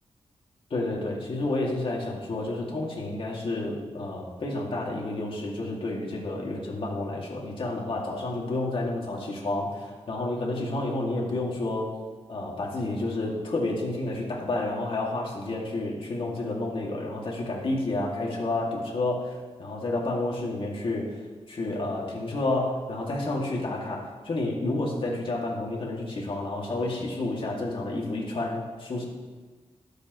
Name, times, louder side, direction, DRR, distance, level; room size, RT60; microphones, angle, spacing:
voice 1, 0.7-11.9 12.3-21.2 21.5-29.1, left 2 dB, 50° left, -2 dB, 2.4 m, -30 dB
22.5 x 8.1 x 3.2 m, 1.4 s
wide cardioid pair, 160°, 11 cm